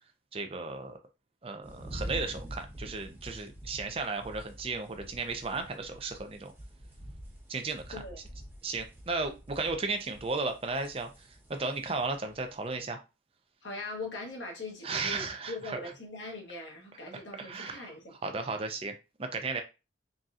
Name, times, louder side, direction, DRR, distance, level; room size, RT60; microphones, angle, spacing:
voice 1, 0.3-1.0 1.4-6.5 7.5-8.0 8.6-11.1 11.5-13.0 14.8-15.8 17.4-17.9 18.2-18.9 19.2-19.6, right 3 dB, 30° right, 0.5 m, -34 dB
sound 1, 1.6-12.8, equal, 10° right, 0.9 m, -46 dB
voice 2, 13.6-18.1, left 2 dB, 70° left, 1.3 m, -41 dB
4.1 x 3.6 x 2.5 m
head